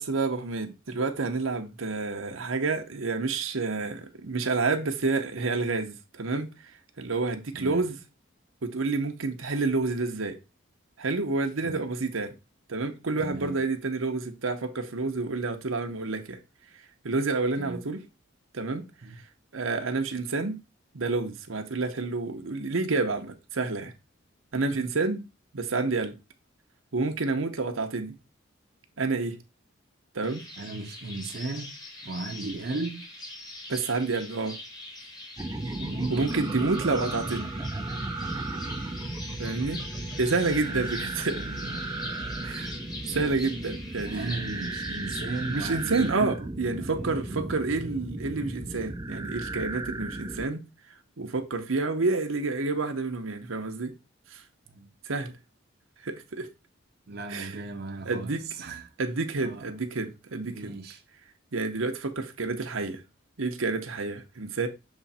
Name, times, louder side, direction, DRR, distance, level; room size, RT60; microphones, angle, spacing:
voice 1, 0.0-6.5 7.0-8.0 8.6-10.4 11.0-12.3 12.7-16.4 17.0-18.0 18.5-18.9 19.5-20.6 20.9-23.9 24.5-25.2 25.5-26.2 26.9-28.2 29.0-29.4 30.1-30.4 33.7-34.6 36.1-37.5 39.4-39.8 40.2-41.4 42.4-42.7 43.1-44.3 45.5-50.6 51.2-53.9 54.3-54.4 55.1-55.3 56.0-56.5 57.3-57.5 58.0-60.8 61.5-63.0 63.4-64.7, right 3 dB, 90° right, 0.9 m, -29 dB
voice 2, 7.5-7.9 11.6-11.9 13.2-13.6 17.6-17.8 19.0-19.2 24.7-24.9 30.6-31.7 32.0-33.1 35.7-36.7 40.5-42.0 44.0-47.7 54.8-54.9 57.1-58.9 59.4-59.7 60.4-61.0, right 2 dB, 50° right, 0.7 m, -37 dB
sound 1, 30.2-46.1, left 2 dB, 20° left, 1.3 m, -43 dB
sound 2, 35.4-50.5, right 2 dB, 15° right, 0.4 m, -35 dB
7.1 x 3.2 x 4.2 m
head